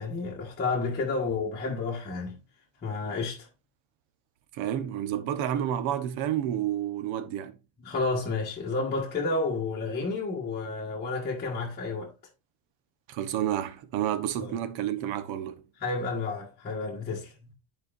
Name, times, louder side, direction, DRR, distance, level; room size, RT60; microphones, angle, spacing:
voice 1, 0.0-2.4 2.8-3.5 7.8-12.1 14.4-14.5 15.8-17.5, left 3 dB, 20° left, 1.3 m, -31 dB
voice 2, 4.5-7.6 13.1-15.5, right 11 dB, 70° right, 1.0 m, -30 dB
11.0 x 4.5 x 2.5 m
cardioid pair, 160°, 48 cm